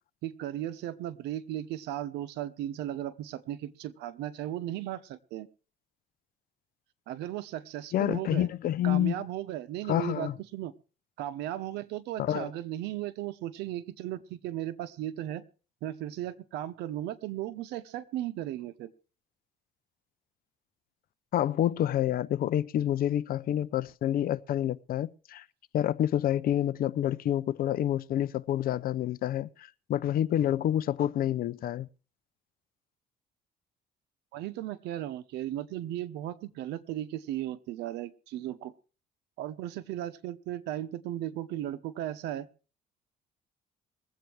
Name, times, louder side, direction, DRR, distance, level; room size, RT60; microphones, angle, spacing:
voice 1, 0.2-5.5 7.1-8.5 8.8-10.7 11.2-15.4 15.8-18.9 34.3-38.7 39.4-42.5, right 13 dB, 85° right, 1.1 m, -36 dB
voice 2, 7.9-9.1 9.9-10.4 12.2-12.5 21.3-25.4 25.7-31.9, left 11 dB, 60° left, 0.7 m, -28 dB
21.5 x 8.3 x 4.6 m
cardioid pair, 110°, 17 cm